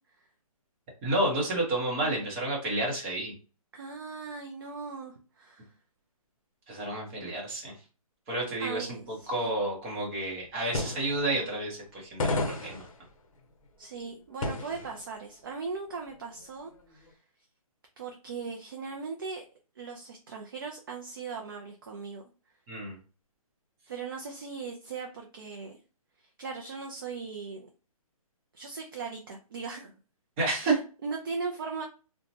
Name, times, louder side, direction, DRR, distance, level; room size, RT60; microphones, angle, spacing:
voice 1, 1.0-3.3 6.7-7.7 8.3-9.0 9.3-12.9 22.7-23.0 30.4-30.7, right 2 dB, 20° right, -2 dB, 0.8 m, -30 dB
voice 2, 3.7-5.7 8.6-9.5 13.8-17.2 18.0-19.5 19.8-22.2 23.9-25.8 26.2-27.7 28.5-30.0 30.5-31.8, right 4 dB, 35° right, 2 dB, 0.4 m, -39 dB
sound 1, 10.5-10.6 10.7-11.9 12.2-15.1 15.4-15.5 16.2-17.1, left 2 dB, 60° left, 0.7 m, -33 dB
2.8 x 2.1 x 2.7 m, 0.35 s
hypercardioid pair, 165°, 19 cm